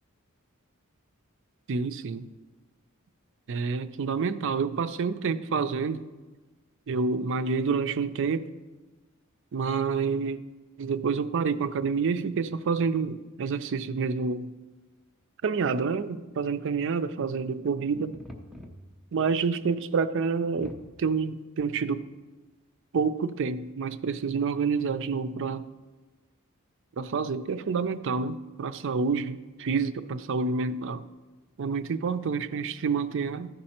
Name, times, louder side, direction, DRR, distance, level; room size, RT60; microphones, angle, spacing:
voice 1, 1.7-2.3 3.5-6.0 6.9-8.5 9.5-10.4 10.8-14.5 15.4-18.2 19.1-22.1 22.9-25.7 27.0-31.0 31.6-33.5, right 5 dB, 60° right, 0.4 m, -28 dB
sound 1, 17.9-19.3 19.6-19.7 20.0-20.1 20.6-21.2 21.9-22.0, equal, ahead, 0.8 m, -44 dB
14.0 x 5.4 x 4.3 m
head